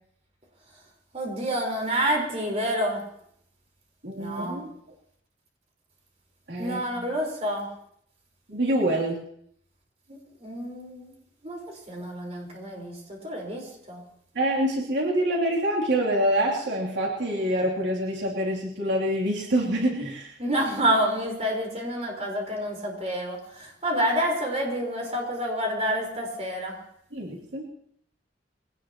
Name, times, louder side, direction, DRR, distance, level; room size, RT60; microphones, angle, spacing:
voice 1, 1.1-3.0 4.2-4.6 6.6-7.7 10.4-11.1 11.4-11.6 11.9-13.0 13.2-14.0 20.4-26.8, equal, 35° right, 0 dB, 4.6 m, -28 dB
voice 2, 4.0-4.7 6.5-7.1 8.5-9.2 14.3-20.3 27.1-27.7, right 1 dB, 80° right, -3 dB, 3.1 m, -26 dB
23.0 x 18.0 x 3.0 m, 0.69 s
head